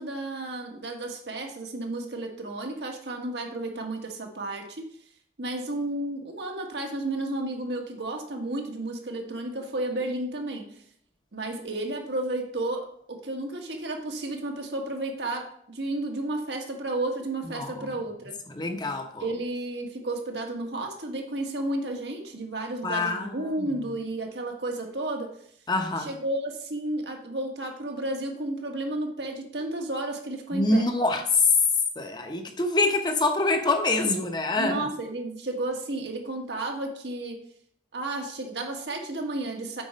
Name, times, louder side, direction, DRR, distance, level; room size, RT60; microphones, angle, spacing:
voice 1, 0.0-4.8 5.4-10.8 11.3-18.3 19.2-25.3 26.0-30.9 34.6-37.4 37.9-39.8, right 2 dB, 80° right, 2 dB, 1.5 m, -32 dB
voice 2, 17.5-17.9 18.6-19.2 22.8-23.5 25.7-26.1 30.5-31.2 32.0-34.8, left 2 dB, 25° left, 5 dB, 0.8 m, -26 dB
8.2 x 4.3 x 5.1 m, 0.64 s
head